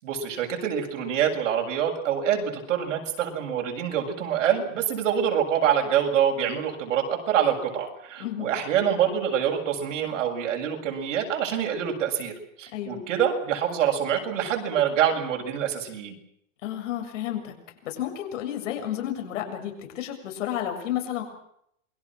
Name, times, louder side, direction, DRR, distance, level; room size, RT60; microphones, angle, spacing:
voice 1, 0.0-12.3 12.6-16.2, right 9 dB, 75° right, 2 dB, 7.6 m, -26 dB
voice 2, 8.2-8.5 12.7-13.0 16.6-17.5 17.8-21.2, left 11 dB, 70° left, 4 dB, 7.3 m, -31 dB
28.0 x 22.5 x 6.3 m, 0.73 s
supercardioid pair, 170°, 38 cm